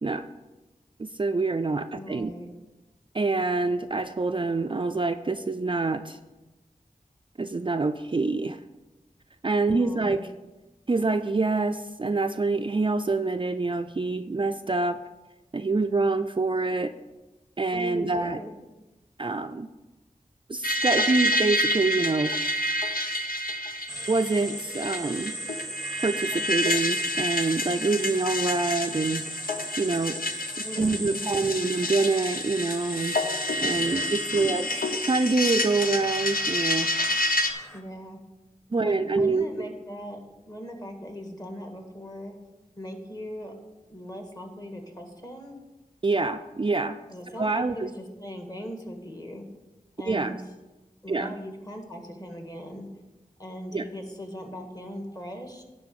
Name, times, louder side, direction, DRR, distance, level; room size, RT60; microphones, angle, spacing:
voice 1, 1.0-2.3 3.1-6.2 7.4-8.6 9.4-10.2 10.9-15.0 15.5-16.9 17.6-18.4 19.2-19.7 20.5-22.3 24.1-25.4 26.0-30.2 30.7-33.2 33.6-36.9 38.7-39.7 46.0-47.0 47.4-47.9 50.1-50.4 51.1-51.3 53.7-53.8, right 3 dB, 35° right, 8 dB, 0.4 m, -26 dB
voice 2, 1.9-2.5 9.7-10.3 17.7-18.5 30.6-31.6 33.8-34.6 37.7-38.2 38.8-40.2 40.5-42.3 42.8-43.5 43.9-45.6 47.1-49.4 50.0-50.4 51.0-52.9 53.4-55.6, equal, 25° left, 3 dB, 1.8 m, -39 dB
sound 1, 20.6-37.5, left 1 dB, 75° left, 0.9 m, -29 dB
sound 2, 23.9-37.8, equal, ahead, 1.0 m, -38 dB
10.5 x 3.9 x 7.6 m, 1.1 s
wide cardioid pair, 45°, 15 cm